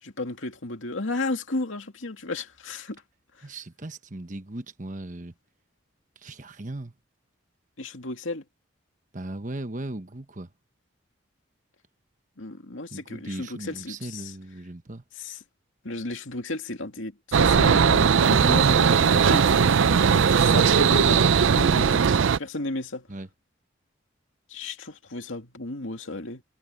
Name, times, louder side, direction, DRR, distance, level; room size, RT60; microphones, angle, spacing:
voice 1, 0.0-3.0 3.4-3.5 7.8-8.4 12.4-14.3 15.2-15.4 15.8-23.1 24.5-26.4, left 2 dB, 75° left, 2.4 m, -33 dB
voice 2, 3.4-5.3 6.2-6.9 9.1-10.5 12.9-15.0 23.1-23.3, right 2 dB, 40° right, 1.2 m, -37 dB
sound 1, 17.3-22.4, right 6 dB, 75° right, 0.5 m, -19 dB
head